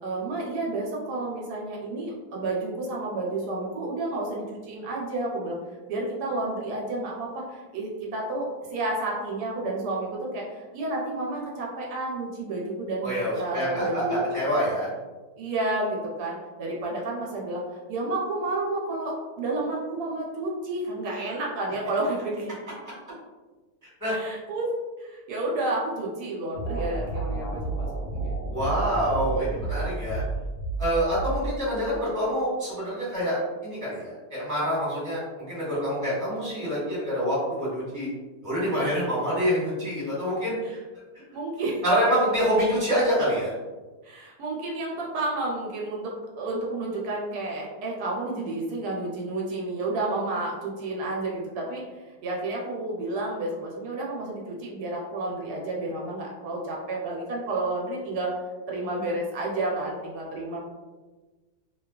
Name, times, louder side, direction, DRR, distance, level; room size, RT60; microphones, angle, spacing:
voice 1, 0.0-5.6 5.9-14.3 15.4-17.6 17.9-22.5 24.1-24.7 25.0-28.4 40.6-40.7 41.3-41.8 44.0-51.8 52.2-58.3 58.7-60.6, right 2 dB, 80° right, -2 dB, 1.1 m, -31 dB
voice 2, 13.0-14.9 24.0-24.1 28.5-30.2 30.8-38.1 38.4-40.8 41.8-43.5, equal, 10° right, -9 dB, 1.1 m, -26 dB
sound 1, 26.5-32.0, right 2 dB, 85° left, 1.2 m, -31 dB
2.7 x 2.2 x 2.3 m, 1.2 s
omnidirectional pair, 1.7 m